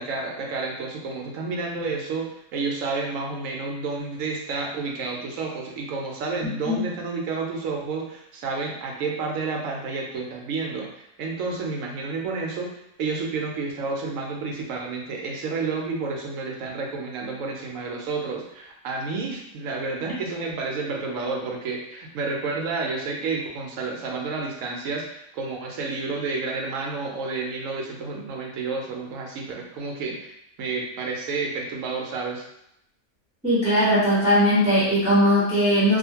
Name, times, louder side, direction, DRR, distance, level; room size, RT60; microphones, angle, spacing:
voice 1, 0.0-2.3 2.5-12.7 13.0-30.3 30.6-32.4, right 4 dB, 70° right, 0 dB, 0.9 m, -30 dB
voice 2, 33.4-36.0, equal, 5° right, -10 dB, 0.8 m, -19 dB
2.7 x 2.4 x 2.8 m, 0.78 s
omnidirectional pair, 1.5 m